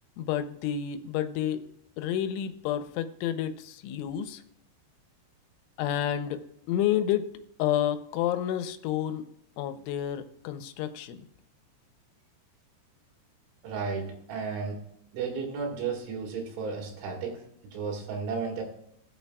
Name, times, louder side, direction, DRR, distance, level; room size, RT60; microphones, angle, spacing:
voice 1, 0.2-1.6 2.0-4.4 5.8-6.4 6.7-7.3 7.6-9.2 9.6-11.2, left 10 dB, 90° left, 10 dB, 3.2 m, -29 dB
voice 2, 13.6-14.8 15.1-17.4 17.7-18.6, right 5 dB, 80° right, 0 dB, 4.4 m, -33 dB
19.0 x 6.7 x 2.3 m, 0.73 s
omnidirectional pair, 5.4 m